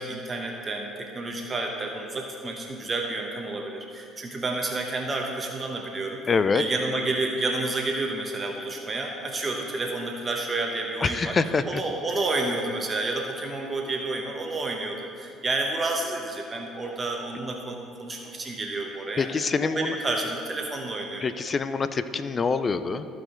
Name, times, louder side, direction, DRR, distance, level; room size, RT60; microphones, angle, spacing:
voice 1, 0.0-6.2 6.5-11.4 11.6-19.3 19.6-21.2, right 2 dB, 30° right, 2 dB, 1.0 m, -30 dB
voice 2, 6.3-6.6 11.0-11.8 19.2-20.0 21.2-23.1, left 4 dB, 35° left, 12 dB, 0.5 m, -25 dB
14.0 x 5.0 x 3.9 m, 2.5 s
supercardioid pair, 80°, 0 cm